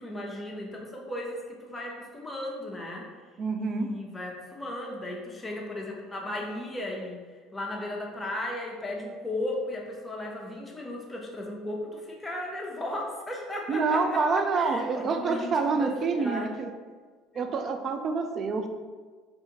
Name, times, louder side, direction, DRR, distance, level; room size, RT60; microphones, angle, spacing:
voice 1, 0.0-3.1 3.6-7.2 7.5-16.5 17.3-17.4, left 1 dB, 15° left, -1 dB, 0.8 m, -36 dB
voice 2, 3.4-3.9 13.7-16.7 17.3-18.7, right 4 dB, 45° right, 6 dB, 0.3 m, -27 dB
3.4 x 2.6 x 2.9 m, 1.5 s
supercardioid pair, 95°, 0 cm